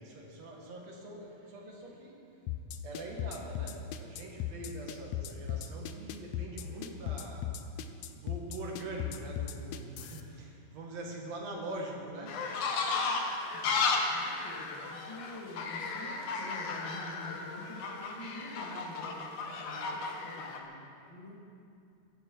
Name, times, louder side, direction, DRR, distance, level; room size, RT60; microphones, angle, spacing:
voice 1, 0.0-2.4 2.8-12.4, right 2 dB, 55° right, -1 dB, 3.1 m, -43 dB
sound 1, 2.5-10.2, left 11 dB, 80° left, 1.5 m, -37 dB
sound 2, 12.3-20.6, left 4 dB, 60° left, 2.1 m, -34 dB
voice 2, 14.1-19.2 19.6-21.4, left 1 dB, 10° left, -3 dB, 1.7 m, -47 dB
22.5 x 11.0 x 4.8 m, 2.5 s
omnidirectional pair, 3.7 m